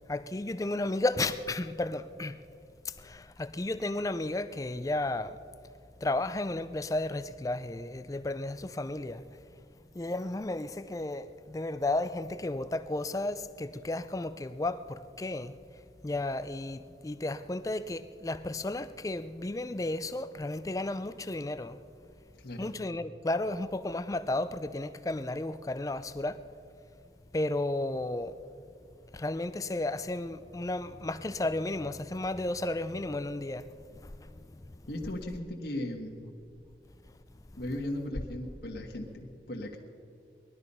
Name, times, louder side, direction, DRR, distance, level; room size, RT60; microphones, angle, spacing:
voice 1, 0.1-2.4 2.8-5.4 6.0-9.2 9.9-15.6 16.0-21.8 22.6-26.4 27.3-28.4 29.1-33.7 34.0-34.4, left 2 dB, 20° left, 0.4 m, -33 dB
voice 2, 22.4-22.7 34.9-36.3 37.6-39.8, left 1 dB, 60° left, 1.5 m, -37 dB
19.5 x 12.5 x 5.5 m
head